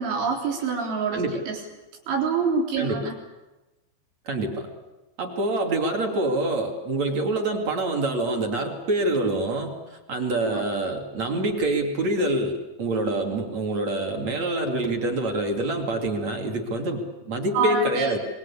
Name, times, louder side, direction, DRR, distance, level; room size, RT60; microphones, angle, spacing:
voice 1, 0.0-1.6 2.1-3.2 10.5-10.6 17.5-18.1, right 5 dB, 80° right, 0 dB, 6.5 m, -26 dB
voice 2, 1.1-1.4 2.8-3.1 4.3-4.7 5.2-18.2, right 2 dB, 40° right, 3 dB, 2.7 m, -26 dB
26.0 x 21.5 x 8.6 m, 1.1 s
omnidirectional pair, 6.0 m